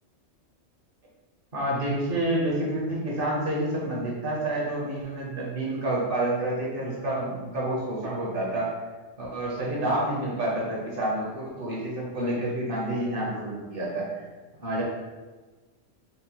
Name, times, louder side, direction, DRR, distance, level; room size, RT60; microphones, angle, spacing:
voice 1, 1.5-8.7 9.2-14.3 14.6-14.8, right 1 dB, 50° right, -4 dB, 1.1 m, -28 dB
4.3 x 2.1 x 2.9 m, 1.3 s
omnidirectional pair, 1.2 m